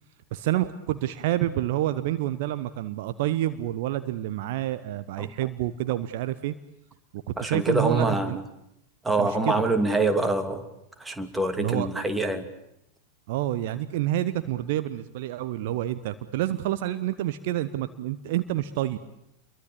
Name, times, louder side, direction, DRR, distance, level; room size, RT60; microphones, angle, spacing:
voice 1, 0.3-6.5 7.1-8.4 9.2-9.6 11.6-11.9 13.3-19.0, right 14 dB, 50° right, 12 dB, 1.1 m, -28 dB
voice 2, 7.4-8.4 9.0-10.7 11.0-12.5, right 2 dB, 10° right, 8 dB, 2.8 m, -25 dB
29.5 x 23.0 x 8.7 m, 0.80 s
figure-of-eight pair, 90°, 0 cm